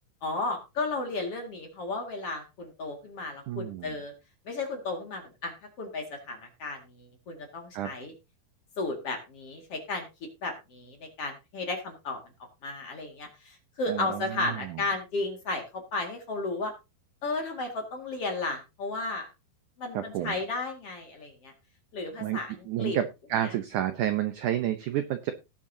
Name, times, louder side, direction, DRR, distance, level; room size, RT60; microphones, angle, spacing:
voice 1, 0.2-4.1 4.5-8.1 8.8-10.1 10.4-12.2 12.6-16.7 17.2-19.3 19.8-21.5 21.9-23.0 23.4-23.5, left 3 dB, 45° left, 2 dB, 2.5 m, -34 dB
voice 2, 3.5-3.9 7.7-7.9 13.9-14.8 19.9-20.4 22.2-22.4 22.7-23.0 23.3-25.3, right 11 dB, 80° right, 9 dB, 1.8 m, -30 dB
18.0 x 7.4 x 2.8 m, 0.26 s
omnidirectional pair, 4.7 m